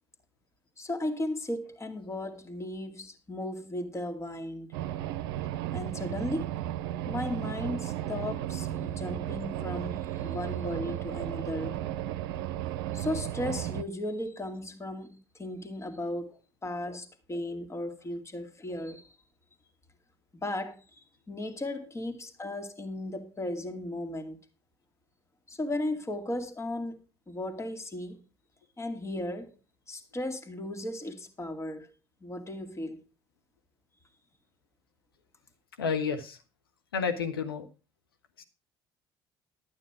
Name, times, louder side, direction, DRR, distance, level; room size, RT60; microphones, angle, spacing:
voice 1, 0.8-4.7 5.7-6.5 7.1-11.8 12.9-16.3 16.6-19.2 20.3-21.0 21.3-24.4 25.5-27.0 27.3-28.2 28.8-29.6 29.9-31.9 32.2-33.0, left 1 dB, 25° left, 2.3 m, -36 dB
sound 1, 4.7-13.8, right 12 dB, 70° right, 0.6 m, -34 dB
voice 2, 35.8-36.4 36.9-37.6 38.4-38.5, left 6 dB, 85° left, 1.2 m, -31 dB
12.0 x 9.2 x 4.8 m
figure-of-eight pair, 55°, 12 cm